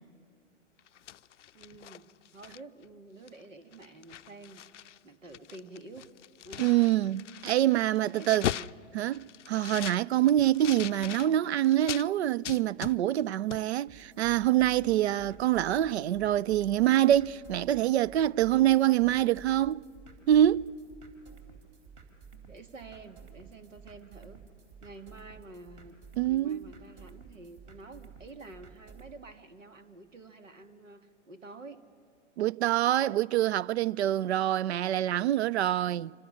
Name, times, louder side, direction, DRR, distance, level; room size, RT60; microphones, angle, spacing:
sound 1, 0.8-2.9 3.3-3.4 3.7-5.0 5.2-12.1 12.4-13.3 13.5-13.6, left 11 dB, 70° left, 0.5 m, -40 dB
voice 1, 1.5-6.0 6.4-6.8 8.1-8.8 22.5-24.4 24.8-26.0 26.3-31.8, right 2 dB, 85° right, 1.9 m, -49 dB
voice 2, 6.6-8.4 8.9-19.8 20.3-20.7 26.2-26.7 32.4-36.1, right 12 dB, 60° right, 0.5 m, -25 dB
sound 2, 13.9-29.1, right 6 dB, 40° right, 3.6 m, -53 dB
27.0 x 25.5 x 6.4 m
figure-of-eight pair, 115°, 37 cm